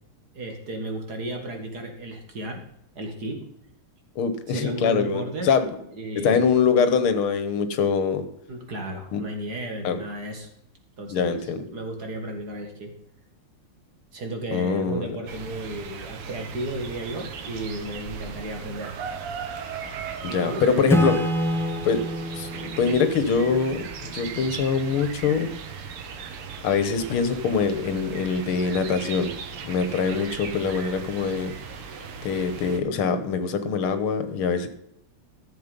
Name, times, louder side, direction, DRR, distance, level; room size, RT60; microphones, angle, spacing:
voice 1, 0.3-2.6 3.0-3.4 4.5-5.5 5.9-6.4 8.5-10.5 11.0-12.9 14.1-18.9 20.3-20.7, right 1 dB, 45° right, 3 dB, 2.3 m, -34 dB
voice 2, 4.2-5.7 6.2-8.2 9.1-9.2 9.8-10.0 11.1-11.6 14.5-15.2 20.2-21.2 21.8-22.0 22.3-25.5 26.6-29.3 29.6-31.5 32.2-34.7, left 5 dB, 75° left, 10 dB, 1.9 m, -23 dB
sound 1, 15.3-32.8, right 6 dB, 85° right, 2.1 m, -37 dB
Acoustic guitar / Strum, 20.9-24.5, equal, ahead, 0.8 m, -27 dB
13.5 x 7.8 x 5.2 m, 0.74 s
omnidirectional pair, 2.4 m